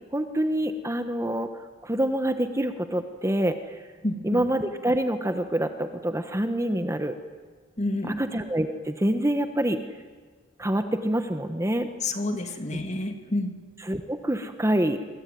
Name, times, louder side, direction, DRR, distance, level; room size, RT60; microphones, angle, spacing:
voice 1, 0.1-1.5 1.8-3.8 4.2-7.2 8.2-9.8 10.6-11.9 13.9-15.0, right 1 dB, 15° right, 8 dB, 1.3 m, -26 dB
voice 2, 4.0-4.4 7.8-8.2 12.0-13.5, left 2 dB, 35° left, 6 dB, 2.7 m, -29 dB
26.5 x 23.5 x 9.4 m, 1.5 s
head